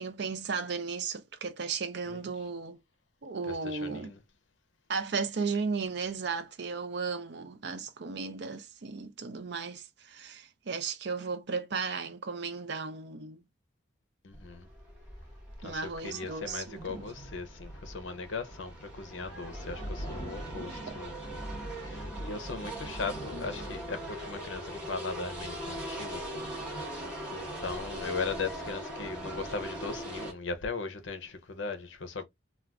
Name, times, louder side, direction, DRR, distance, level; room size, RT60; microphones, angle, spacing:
voice 1, 0.0-2.8 3.2-4.1 4.9-13.4 15.6-17.0 20.6-20.7, right 5 dB, 55° right, 0.5 m, -35 dB
voice 2, 3.5-4.2 14.2-14.7 15.6-26.5 27.3-32.2, left 4 dB, 70° left, 0.6 m, -38 dB
sound 1, 14.3-30.3, right 1 dB, 5° right, 1.0 m, -41 dB
sound 2, 16.8-25.9, equal, 25° left, 0.9 m, -43 dB
2.4 x 2.2 x 3.3 m
head